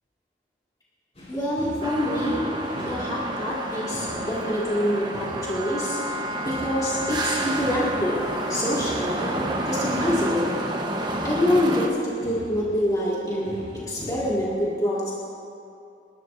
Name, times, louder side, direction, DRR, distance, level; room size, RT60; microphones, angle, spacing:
sound 1, 1.2-14.5, equal, 40° left, 4.3 m, -41 dB
voice 1, 1.3-2.5 2.8-8.2 8.5-10.6 11.2-13.5 13.9-15.1, left 1 dB, 20° left, -7 dB, 2.1 m, -26 dB
sound 2, 1.8-11.9, right 1 dB, 25° right, 1.1 m, -30 dB
28.5 x 11.5 x 2.7 m, 2.5 s
head